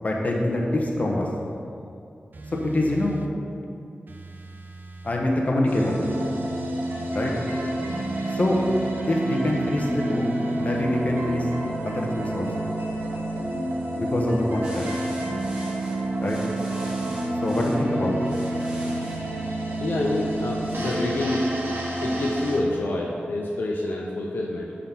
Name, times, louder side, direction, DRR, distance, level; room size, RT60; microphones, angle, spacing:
voice 1, 0.0-1.3 2.6-3.2 5.0-6.0 7.1-7.3 8.3-8.6 9.1-10.3 10.6-11.5 11.8-12.5 13.9-14.9 16.2-16.4 17.4-18.2, left 1 dB, 45° left, -1 dB, 1.2 m, -24 dB
sound 1, 2.3-3.3 4.1-5.3 6.0-7.2 7.9-9.0 9.8-10.9, right 2 dB, 55° right, 0.5 m, -42 dB
sound 2, 5.6-22.6, right 1 dB, 80° right, 1.5 m, -29 dB
sound 3, 14.6-17.8 18.2-19.2 20.6-21.0, right 1 dB, 25° right, 1.8 m, -44 dB
voice 2, 19.8-21.5 22.0-24.8, left 2 dB, 65° left, -2 dB, 0.7 m, -27 dB
9.1 x 4.3 x 5.8 m, 2.6 s
wide cardioid pair, 100°, 4 cm